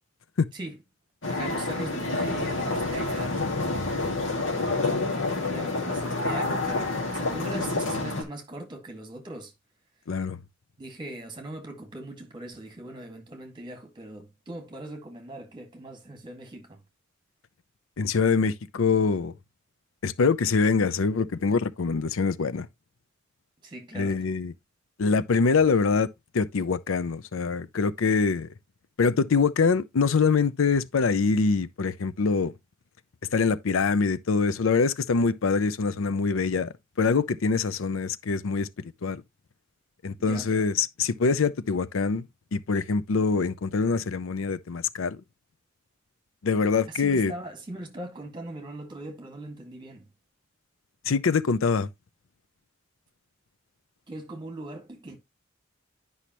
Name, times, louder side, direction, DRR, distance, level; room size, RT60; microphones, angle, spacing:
sound 1, 1.2-8.2, left 2 dB, 70° left, 2.2 m, -28 dB
voice 1, 1.2-3.4 5.4-9.5 10.8-16.8 23.6-24.2 40.2-40.5 47.0-50.1 54.1-55.2, right 1 dB, 25° right, 1.9 m, -40 dB
voice 2, 10.1-10.4 18.0-19.3 20.0-22.7 23.9-24.5 25.0-26.1 26.3-28.5 29.0-32.5 33.3-38.7 39.0-39.2 40.0-42.2 42.5-45.2 46.4-47.3 51.1-51.9, left 4 dB, 90° left, 0.6 m, -24 dB
10.0 x 5.5 x 3.0 m
head